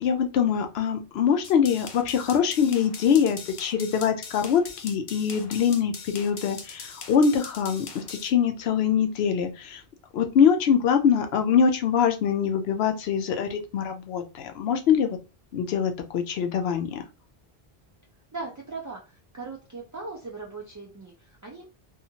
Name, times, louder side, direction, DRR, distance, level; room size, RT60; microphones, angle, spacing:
voice 1, 0.0-9.8 10.1-15.2 15.5-17.0, left 7 dB, 80° left, 6 dB, 0.8 m, -23 dB
sound 1, 1.4-8.3, left 5 dB, 55° left, 0.4 m, -41 dB
voice 2, 18.3-21.7, right 3 dB, 30° right, -2 dB, 0.3 m, -39 dB
2.7 x 2.4 x 2.7 m, 0.30 s
omnidirectional pair, 1.0 m